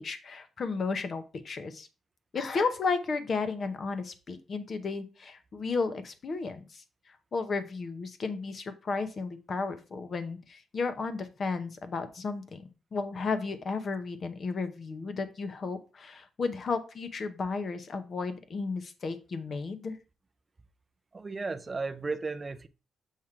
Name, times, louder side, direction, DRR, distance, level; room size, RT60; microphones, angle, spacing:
voice 1, 0.0-1.9 2.3-20.0, left 4 dB, 40° left, 0.8 m, -33 dB
voice 2, 21.1-22.7, right 4 dB, 25° right, 0.4 m, -34 dB
7.3 x 3.0 x 4.9 m
cardioid pair, 150°, 0 cm